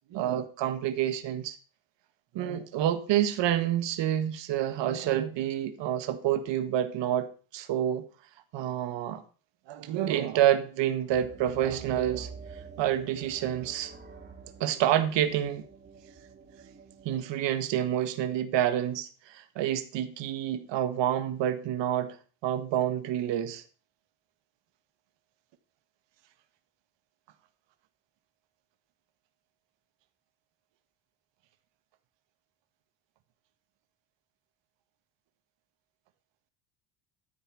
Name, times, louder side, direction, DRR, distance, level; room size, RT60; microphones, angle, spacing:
voice 1, 0.1-1.5 2.3-8.0 8.5-9.2 9.7-12.3 12.8-13.9 14.6-15.6 17.0-22.2 22.4-23.6, right 11 dB, 60° right, 1.7 m, -28 dB
sound 1, 11.1-17.4, right 5 dB, 20° right, 2.4 m, -48 dB
13.0 x 4.8 x 6.3 m
supercardioid pair, 100°, 49 cm